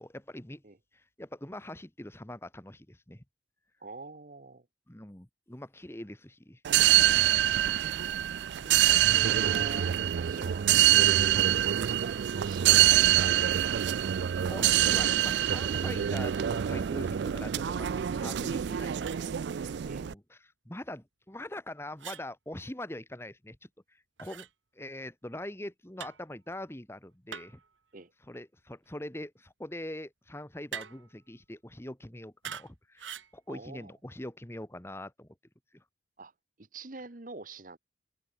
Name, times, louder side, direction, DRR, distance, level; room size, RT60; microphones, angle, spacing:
voice 1, 0.0-0.6 0.9-3.2 4.9-6.6 10.3-10.5 12.9-13.0 14.5-20.4 20.6-23.6 23.9-24.5 24.7-27.6 28.3-35.3 35.7-35.8, left 1 dB, 15° left, 1.4 m, -43 dB
voice 2, 3.8-4.7 8.0-8.1 8.5-13.4 18.6-19.0 19.8-20.1 27.9-28.1 33.5-33.9 36.2-36.3 36.6-37.8, right 3 dB, 45° right, 1.1 m, -46 dB
sound 1, 6.6-20.1, right 12 dB, 65° right, 0.3 m, -25 dB
sound 2, 18.5-18.6 19.0-19.3 22.0-22.3 24.2-24.5 26.0-26.3 27.3-27.7 30.7-31.1 32.4-32.7 33.0-33.3, right 8 dB, 80° right, 2.2 m, -42 dB
head